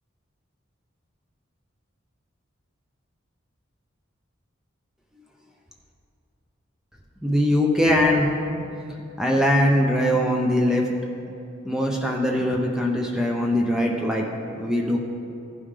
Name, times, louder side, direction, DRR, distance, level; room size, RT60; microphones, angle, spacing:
voice 1, 7.2-8.3 9.2-10.9 11.6-14.3 14.5-15.0, left 1 dB, 5° right, -1 dB, 0.6 m, -21 dB
15.5 x 5.5 x 3.3 m, 2.6 s
head